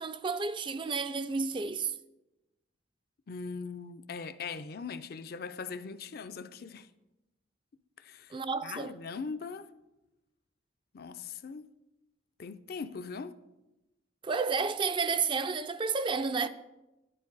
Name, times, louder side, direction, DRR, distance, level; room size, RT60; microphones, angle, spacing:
voice 1, 0.0-1.9 8.3-8.9 14.2-16.5, right 5 dB, 25° right, 0.4 m, -31 dB
voice 2, 3.3-6.9 8.0-8.4 8.6-9.7 10.9-11.7 12.4-13.4, left 5 dB, 50° left, 0.5 m, -40 dB
11.5 x 10.0 x 3.9 m
head